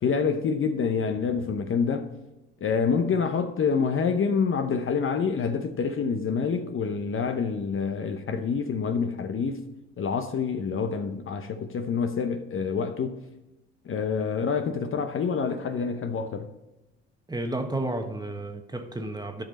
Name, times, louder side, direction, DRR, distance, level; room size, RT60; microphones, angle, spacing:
voice 1, 0.0-2.1 2.6-9.6 10.0-13.2 13.8-16.5, left 5 dB, 40° left, 0.8 m, -27 dB
voice 2, 17.3-19.4, right 2 dB, 10° right, 1.3 m, -32 dB
12.5 x 5.2 x 4.2 m
hypercardioid pair, 65°, 32 cm